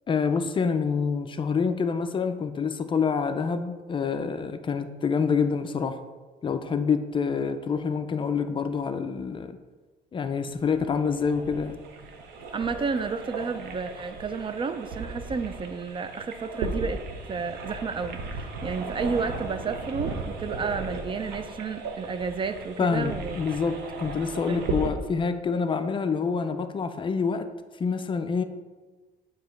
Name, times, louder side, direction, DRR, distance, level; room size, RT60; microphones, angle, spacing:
voice 1, 0.1-6.0 6.4-9.6 10.1-11.8 22.8-27.5 27.8-28.4, left 5 dB, 30° left, 9 dB, 0.4 m, -27 dB
sound 1, 10.5-24.9, right 3 dB, 80° right, 0.9 m, -36 dB
voice 2, 12.5-23.4 24.5-24.6, right 5 dB, 30° right, 10 dB, 0.4 m, -31 dB
7.5 x 3.0 x 5.7 m, 1.3 s
cardioid pair, 110°, 17 cm